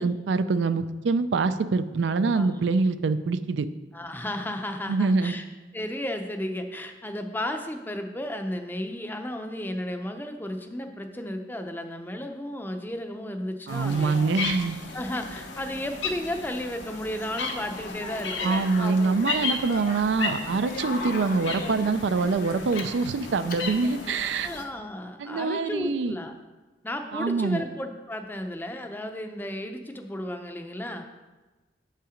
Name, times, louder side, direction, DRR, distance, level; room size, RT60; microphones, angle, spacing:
voice 1, 0.0-3.7 4.9-5.3 13.7-14.8 18.4-24.5 25.2-26.1 27.1-27.6, right 4 dB, 75° right, 12 dB, 0.4 m, -25 dB
voice 2, 3.9-5.4 5.7-14.3 14.9-19.2 24.4-26.3 26.8-31.1, left 1 dB, 10° left, 6 dB, 0.5 m, -34 dB
sound 1, 13.7-24.6, left 4 dB, 80° left, 1.1 m, -35 dB
Speech, 17.7-24.2, left 3 dB, 50° left, 0.7 m, -41 dB
7.3 x 5.6 x 5.0 m, 1.2 s
head